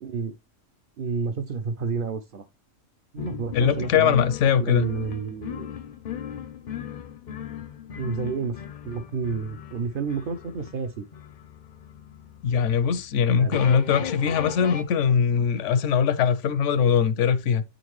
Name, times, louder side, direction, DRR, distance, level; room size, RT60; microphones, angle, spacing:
voice 1, 0.0-0.3 1.0-2.4 3.1-4.2 4.6-5.7 8.0-11.1 13.3-13.6, right 5 dB, 60° right, 0.6 m, -30 dB
sound 1, 3.2-14.8, left 9 dB, 55° left, 0.5 m, -38 dB
voice 2, 3.5-4.9 12.4-17.6, left 7 dB, 75° left, 0.9 m, -21 dB
8.5 x 3.9 x 3.0 m
omnidirectional pair, 1.3 m